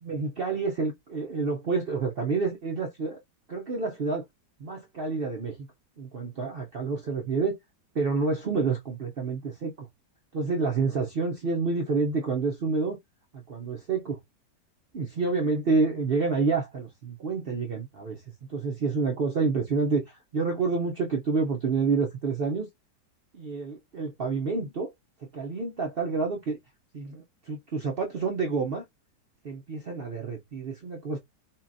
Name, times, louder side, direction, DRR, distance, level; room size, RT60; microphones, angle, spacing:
voice 1, 0.0-3.2 3.5-4.2 4.6-5.7 6.0-7.5 7.9-9.9 10.3-13.0 13.3-14.2 14.9-18.2 18.5-22.7 23.3-24.9 25.3-26.6 26.9-28.8 29.4-31.2, right 4 dB, 65° right, 0.5 m, -28 dB
5.5 x 2.3 x 2.6 m
omnidirectional pair, 1.9 m